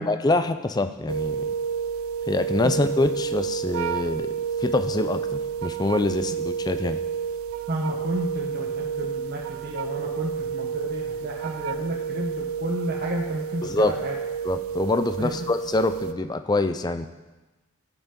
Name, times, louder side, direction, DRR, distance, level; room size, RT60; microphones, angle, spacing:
voice 1, 0.0-1.5 2.3-4.3 4.6-7.0 13.6-13.9 14.4-17.1, left 2 dB, 20° left, 11 dB, 0.4 m, -25 dB
sound 1, 1.1-16.1, right 7 dB, 85° right, 0.5 m, -30 dB
voice 2, 7.7-14.1 15.2-15.3, right 1 dB, 45° right, -2 dB, 0.9 m, -31 dB
14.0 x 8.0 x 3.7 m, 1.2 s
head